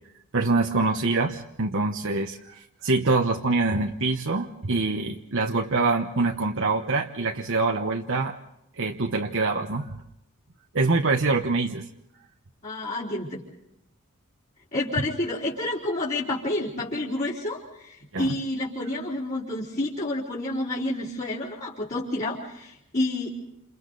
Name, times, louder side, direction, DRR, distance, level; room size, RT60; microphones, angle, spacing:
voice 1, 0.3-8.4 8.8-10.0 10.7-11.8 18.1-18.3, right 3 dB, 60° right, 2 dB, 1.2 m, -25 dB
voice 2, 12.6-13.4 14.7-23.3, left 1 dB, 40° left, -8 dB, 4.2 m, -29 dB
29.5 x 28.5 x 4.1 m, 0.84 s
head